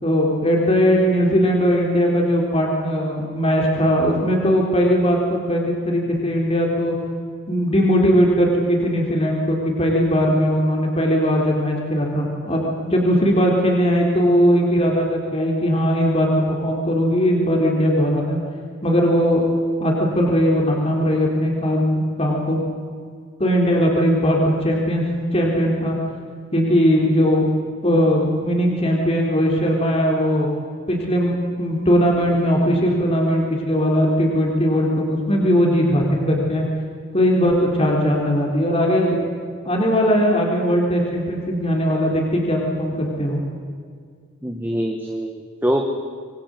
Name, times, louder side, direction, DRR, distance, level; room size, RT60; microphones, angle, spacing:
voice 1, 0.0-7.0 7.5-18.4 18.8-19.4 19.8-22.6 23.4-26.0 26.5-27.5 27.8-30.5 30.9-36.7 37.1-39.2 39.6-43.4, equal, 30° left, -1 dB, 3.8 m, -19 dB
voice 2, 44.4-45.8, equal, 10° right, 3 dB, 1.5 m, -24 dB
26.5 x 22.5 x 7.9 m, 2.1 s
head